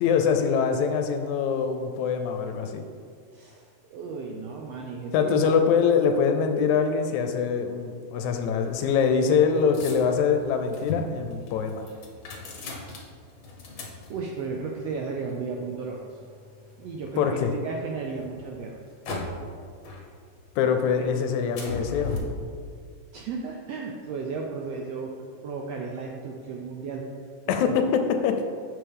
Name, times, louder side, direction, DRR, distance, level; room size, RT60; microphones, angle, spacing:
voice 1, 0.0-2.8 5.1-11.9 17.2-17.5 20.6-22.1 27.5-28.4, left 6 dB, 80° left, 6 dB, 1.8 m, -24 dB
voice 2, 3.3-5.3 12.8-13.0 14.1-16.2 16.8-18.8 23.1-25.1 25.4-27.0 27.5-27.6, right 4 dB, 80° right, 0 dB, 1.5 m, -34 dB
sound 1, 8.2-17.4 17.9-19.6 19.8-20.6 20.9-22.2, left 3 dB, 55° left, 1.4 m, -39 dB
9.2 x 6.6 x 3.6 m, 2.2 s
omnidirectional pair, 3.5 m